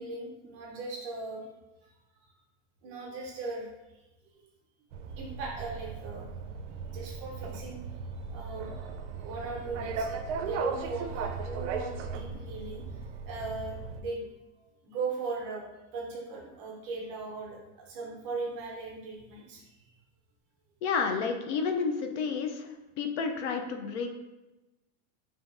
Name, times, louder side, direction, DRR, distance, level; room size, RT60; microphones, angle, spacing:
voice 1, 0.0-1.5 1.8-2.3 2.8-3.7 5.1-6.3 6.8-14.3 14.8-15.6 15.9-19.7, right 3 dB, 25° right, -2 dB, 0.4 m, -38 dB
sound 1, 4.9-14.0, right 5 dB, 80° right, 0.5 m, -37 dB
voice 2, 20.8-24.1, left 5 dB, 70° left, 5 dB, 0.6 m, -31 dB
4.9 x 2.7 x 2.5 m, 1.1 s
supercardioid pair, 175°, 36 cm